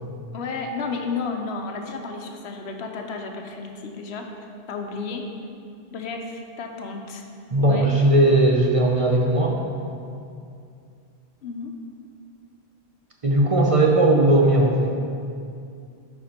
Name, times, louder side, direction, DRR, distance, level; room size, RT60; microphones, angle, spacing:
voice 1, 0.3-4.3 4.7-5.2 5.9-7.2 7.6-8.0 11.4-11.7, left 4 dB, 80° left, 3 dB, 1.0 m, -32 dB
voice 2, 7.5-9.6 13.2-14.9, right 1 dB, 40° right, -1 dB, 0.6 m, -18 dB
10.0 x 4.3 x 4.3 m, 2.4 s
omnidirectional pair, 1.1 m